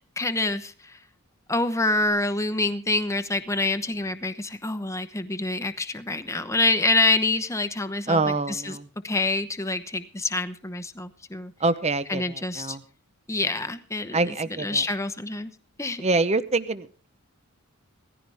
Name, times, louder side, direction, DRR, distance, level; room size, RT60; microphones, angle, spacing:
voice 1, 0.2-1.0 1.5-8.8 9.0-11.5 12.1-12.8 13.3-15.5 15.8-16.0, left 2 dB, 15° left, 10 dB, 1.0 m, -26 dB
voice 2, 8.1-8.9 11.6-12.8 14.1-14.8 16.0-17.1, right 3 dB, 30° right, 13 dB, 0.8 m, -25 dB
18.5 x 15.0 x 3.5 m, 0.41 s
head